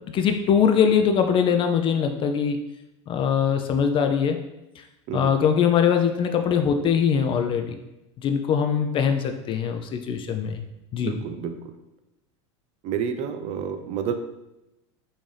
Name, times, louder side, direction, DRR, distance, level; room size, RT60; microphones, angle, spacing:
voice 1, 0.0-2.6 3.1-4.4 4.8-4.9 5.1-7.8 8.2-10.6 10.9-11.1, left 7 dB, 35° left, 6 dB, 0.4 m, -22 dB
voice 2, 11.0-11.7 12.8-14.1, right 7 dB, 45° right, 8 dB, 0.4 m, -30 dB
5.3 x 2.6 x 3.2 m, 0.93 s
supercardioid pair, 110°, 15 cm